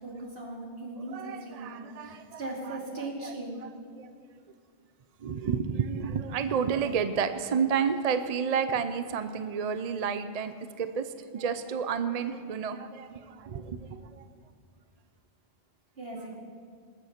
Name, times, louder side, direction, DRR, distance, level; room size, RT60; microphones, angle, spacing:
voice 1, 0.0-3.6 16.0-16.4, right 2 dB, 65° right, -2 dB, 2.6 m, -39 dB
voice 2, 1.1-3.3 4.0-4.1 5.2-14.2, right 6 dB, 45° right, 10 dB, 0.6 m, -31 dB
20.0 x 8.2 x 5.9 m, 2.2 s
omnidirectional pair, 1.1 m